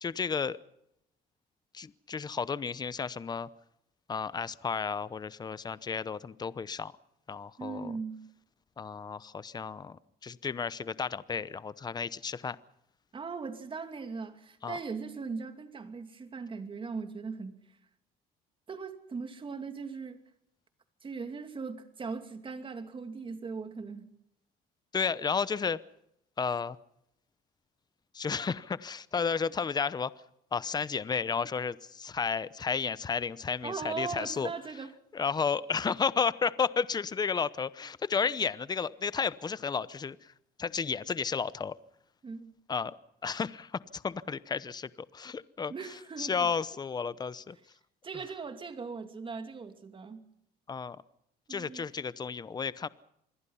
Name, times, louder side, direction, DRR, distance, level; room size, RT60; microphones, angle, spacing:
voice 1, 0.0-0.6 1.7-3.5 4.1-6.9 7.3-7.9 8.8-12.6 14.6-14.8 24.9-25.8 26.4-26.8 28.1-30.1 30.5-34.5 35.1-40.3 40.6-41.7 42.7-45.7 46.2-47.6 50.7-51.0 51.5-52.9, left 5 dB, 25° left, 17 dB, 0.8 m, -32 dB
voice 2, 7.6-8.3 13.1-17.6 18.7-20.2 21.0-24.1 33.6-34.9 42.2-42.5 45.7-46.5 48.0-50.3 51.5-51.8, right 5 dB, 30° right, 8 dB, 2.7 m, -39 dB
27.0 x 21.0 x 5.7 m, 0.78 s
cardioid pair, 110°, 17 cm